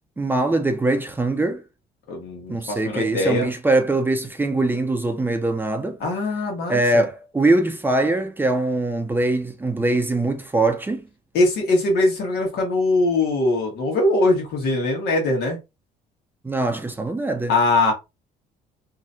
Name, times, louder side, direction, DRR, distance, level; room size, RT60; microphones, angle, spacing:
voice 1, 0.2-1.6 2.5-6.0 6.7-11.1 16.4-17.5, right 2 dB, 10° right, 0.5 m, -22 dB
voice 2, 2.1-3.5 6.0-7.1 11.3-15.6 17.5-17.9, left 2 dB, 75° left, 1.6 m, -21 dB
3.0 x 2.9 x 2.6 m
cardioid pair, 110°, 17 cm